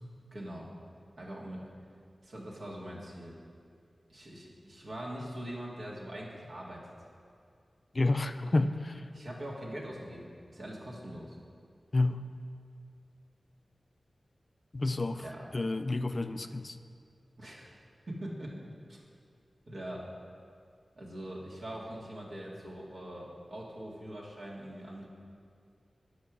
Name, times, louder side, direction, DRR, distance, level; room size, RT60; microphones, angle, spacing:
voice 1, 0.3-0.7 1.2-1.7 2.2-3.4 4.1-6.8 8.5-8.6 9.1-11.4 15.2-15.5 17.4-17.7 18.1-18.6 18.9-19.0 19.7-20.1 21.0-25.1, right 1 dB, 65° right, -4 dB, 1.8 m, -42 dB
voice 2, 7.9-8.9 11.9-12.2 14.7-15.2 15.5-16.8, left 2 dB, 40° left, 10 dB, 0.3 m, -29 dB
9.2 x 6.5 x 6.1 m, 2.3 s
wide cardioid pair, 85°, 0 cm